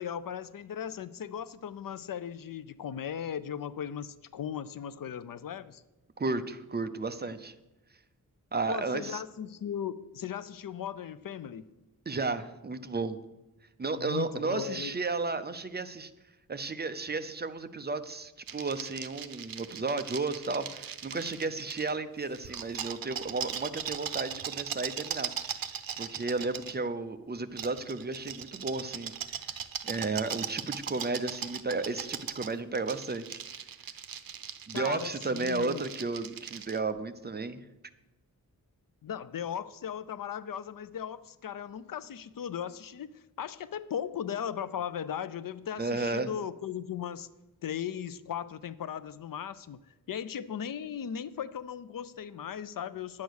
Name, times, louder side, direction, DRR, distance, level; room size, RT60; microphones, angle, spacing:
voice 1, 0.0-5.8 8.7-11.7 14.0-14.9 34.7-35.9 39.0-47.3 47.6-53.2, left 9 dB, 70° left, 0.6 m, -37 dB
voice 2, 6.2-7.5 8.5-9.2 12.1-13.2 13.8-16.1 16.5-25.3 26.0-29.1 29.8-33.4 34.7-37.6 45.8-46.3, right 3 dB, 30° right, 0.6 m, -33 dB
sound 1, 18.5-21.9 22.3-26.8 27.6-36.8, right 8 dB, 80° right, 0.7 m, -39 dB
10.5 x 8.5 x 6.3 m
wide cardioid pair, 150°, 35 cm